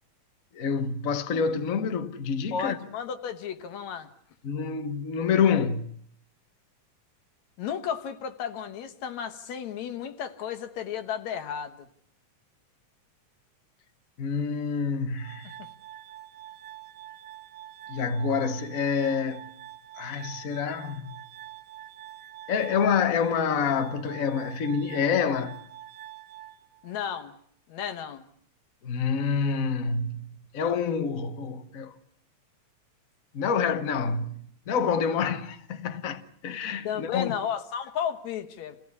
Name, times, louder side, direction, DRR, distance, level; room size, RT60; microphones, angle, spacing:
voice 1, 0.5-2.8 4.4-5.9 14.2-15.6 17.9-19.4 20.0-21.2 22.5-25.6 28.8-31.9 33.3-37.3, left 6 dB, 50° left, 1.0 m, -27 dB
voice 2, 2.5-4.1 7.6-11.9 15.6-15.7 26.8-27.4 27.7-28.2 36.8-38.8, left 8 dB, 70° left, 2.5 m, -33 dB
Glass, 15.2-27.2, right 13 dB, 90° right, 2.7 m, -46 dB
27.5 x 16.5 x 9.7 m
omnidirectional pair, 3.4 m